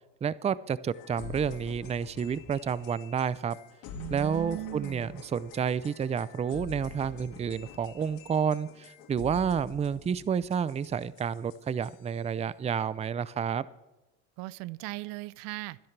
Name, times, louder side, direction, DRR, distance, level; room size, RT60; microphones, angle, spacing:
voice 1, 0.2-3.6 4.1-13.6, right 7 dB, 20° right, 18 dB, 0.5 m, -30 dB
sound 1, 0.9-12.3, left 7 dB, 75° left, 2.1 m, -47 dB
voice 2, 3.9-5.2 14.4-15.8, right 19 dB, 75° right, 20 dB, 0.6 m, -38 dB
24.5 x 10.5 x 3.3 m, 1.0 s
supercardioid pair, 90°, 35 cm